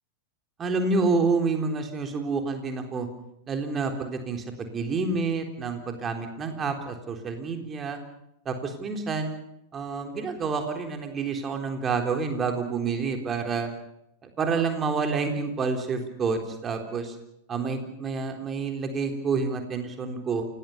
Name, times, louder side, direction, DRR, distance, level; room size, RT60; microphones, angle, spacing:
voice 1, 0.6-3.1 3.5-8.0 8.5-9.4 9.7-13.7 14.2-17.2 17.5-20.5, right 4 dB, 25° right, 5 dB, 3.7 m, -28 dB
28.5 x 18.0 x 6.8 m, 0.80 s
figure-of-eight pair, 90°, 0 cm